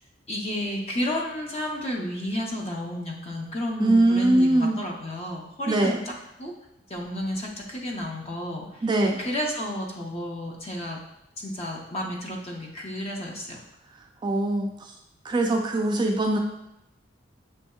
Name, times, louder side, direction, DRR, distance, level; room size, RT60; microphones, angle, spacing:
voice 1, 0.3-6.0 6.4-6.5 6.9-8.7 9.2-11.0 11.4-13.6, left 1 dB, 35° left, 0 dB, 0.7 m, -31 dB
voice 2, 3.8-4.8 5.7-6.0 8.8-9.2 14.2-14.7 15.2-16.4, right 2 dB, 25° right, 2 dB, 0.3 m, -22 dB
6.2 x 2.6 x 2.2 m, 0.87 s
head